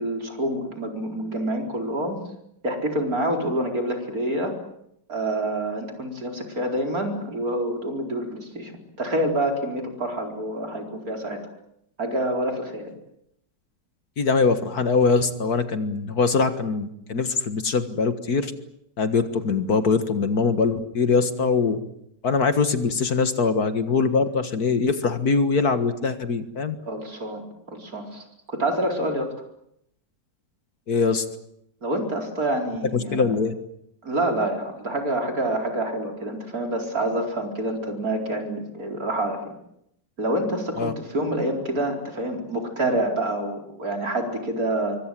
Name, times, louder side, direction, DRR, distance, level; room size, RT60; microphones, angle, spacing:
voice 1, 0.0-2.2 2.6-4.5 5.1-11.4 12.0-12.9 26.9-29.3 31.8-33.3 34.0-39.5 40.2-45.0, right 1 dB, 55° right, 3 dB, 4.9 m, -27 dB
voice 2, 14.2-18.5 19.0-21.8 22.2-26.8 30.9-31.3 32.9-33.5 40.8-40.9, left 4 dB, 60° left, 9 dB, 2.1 m, -22 dB
26.0 x 24.0 x 7.7 m, 0.76 s
omnidirectional pair, 1.9 m